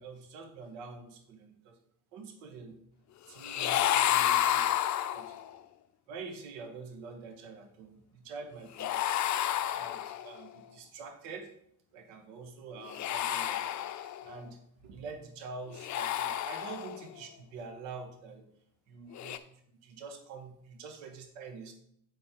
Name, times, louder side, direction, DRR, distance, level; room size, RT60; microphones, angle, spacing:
voice 1, 0.0-1.8 2.1-2.8 3.3-4.8 5.1-5.4 6.1-9.0 9.8-11.5 11.9-18.5 19.0-21.7, right 4 dB, 75° right, 5 dB, 1.3 m, -46 dB
sound 1, 3.4-5.6 8.8-10.4 12.8-14.4 15.7-17.1 19.1-19.4, left 11 dB, 40° left, 0.6 m, -30 dB
8.4 x 4.5 x 4.9 m, 0.71 s
hypercardioid pair, 75°, 44 cm